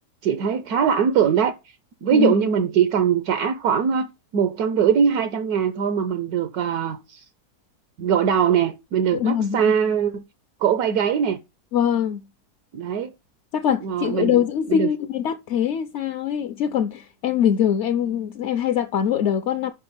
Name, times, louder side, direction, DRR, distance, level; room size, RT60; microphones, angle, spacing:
voice 1, 0.2-1.5 2.0-7.2 8.0-10.2 10.6-11.4 12.7-13.1 13.8-14.9, right 7 dB, 75° right, 1.2 m, -21 dB
voice 2, 9.1-9.7 11.7-12.2 13.5-19.7, left 9 dB, 65° left, 0.7 m, -23 dB
5.7 x 5.3 x 5.5 m
omnidirectional pair, 1.7 m